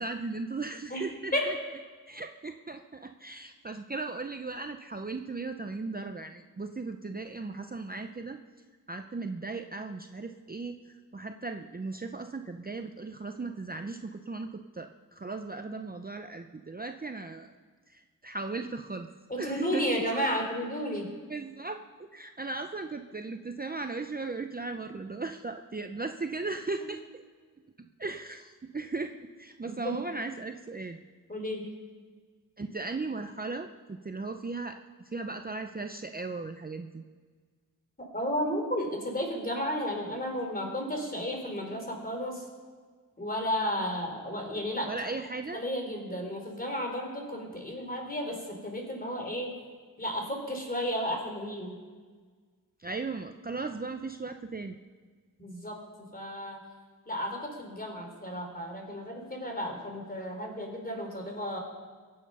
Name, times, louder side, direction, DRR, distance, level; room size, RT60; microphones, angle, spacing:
voice 1, 0.0-1.6 2.1-8.4 8.9-17.5 17.9-19.1 19.4-19.9 21.3-27.0 28.0-29.1 29.4-31.0 32.6-34.8 35.1-37.0 44.9-45.6 52.8-54.8, right 3 dB, 25° right, 6 dB, 0.6 m, -37 dB
voice 2, 0.9-1.5 19.3-21.1 29.6-29.9 31.3-31.7 38.1-42.4 43.2-44.9 45.5-48.4 48.6-49.5 50.0-51.7 55.4-55.8 56.1-56.6 57.1-61.6, equal, 25° left, 1 dB, 3.6 m, -33 dB
23.0 x 8.7 x 5.5 m, 1.5 s
wide cardioid pair, 90°, 34 cm